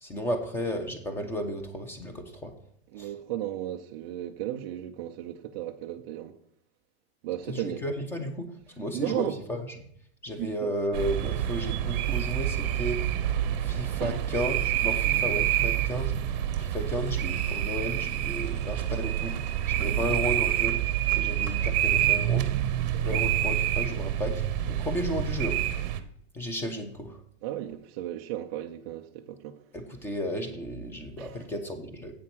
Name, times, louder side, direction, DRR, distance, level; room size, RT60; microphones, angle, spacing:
voice 1, 0.0-2.6 3.0-3.1 7.5-9.9 10.2-13.1 13.6-16.1 16.6-19.4 19.7-20.8 21.1-22.5 23.0-25.6 26.3-27.2 29.7-32.1, equal, 5° left, 0.9 m, -33 dB
voice 2, 2.9-6.4 7.2-7.8 8.9-9.4 10.3-10.7 14.0-14.2 15.4-15.5 19.8-19.9 22.9-23.2 27.4-29.6 31.2-31.4, right 12 dB, 25° right, 0.4 m, -35 dB
sound 1, 10.9-26.0, right 11 dB, 40° right, 0.9 m, -27 dB
8.5 x 7.4 x 6.1 m
supercardioid pair, 170°, 32 cm